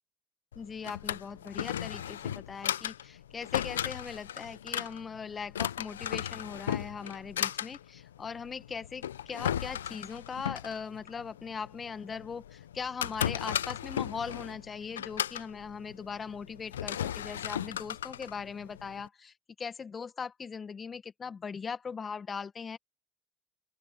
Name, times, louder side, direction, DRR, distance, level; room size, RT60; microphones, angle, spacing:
Drawer open or close, 0.5-19.1, left 10 dB, 85° left, 0.7 m, -36 dB
voice 1, 0.5-22.8, left 6 dB, 35° left, 1.6 m, -40 dB
open air
hypercardioid pair, 60°, 0 cm